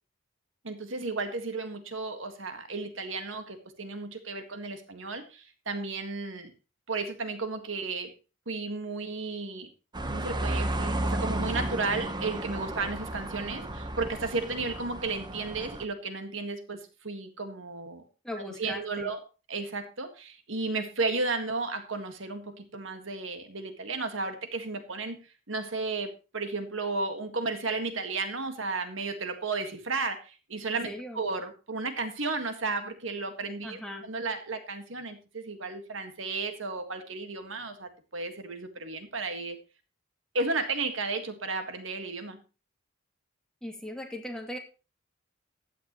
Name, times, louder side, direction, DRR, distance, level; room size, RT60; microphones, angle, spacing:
voice 1, 0.6-6.5 6.9-8.1 8.5-9.7 10.1-18.0 18.4-19.2 19.5-25.2 25.5-39.6 40.3-42.4, right 3 dB, 65° right, 7 dB, 1.8 m, -33 dB
sound 1, 9.9-15.9, right 1 dB, 20° right, 1.1 m, -33 dB
voice 2, 18.2-19.1 30.6-31.2 33.6-34.1 43.6-44.6, left 1 dB, 5° left, 1 dB, 2.5 m, -39 dB
15.5 x 10.0 x 3.1 m, 0.32 s
head